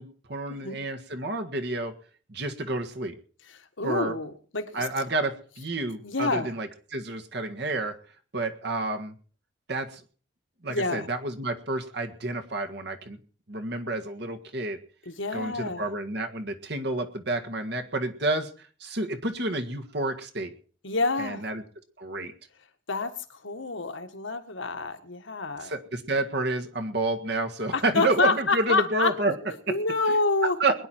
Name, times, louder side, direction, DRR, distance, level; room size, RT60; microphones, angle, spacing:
voice 1, 0.0-2.0 2.3-3.1 3.8-4.2 4.7-8.0 8.3-9.1 9.7-10.0 10.6-13.2 13.5-14.8 15.3-20.5 21.2-21.6 22.0-22.3 25.6-29.4 29.7-29.8 30.1-30.2 30.6-30.9, right 2 dB, 55° right, 5 dB, 1.7 m, -29 dB
voice 2, 3.5-4.9 6.0-6.5 10.7-11.1 15.0-15.8 20.8-21.5 22.9-25.7 27.7-29.1 29.4-30.6, left 3 dB, 75° left, 6 dB, 1.7 m, -28 dB
21.5 x 10.5 x 4.5 m, 0.41 s
head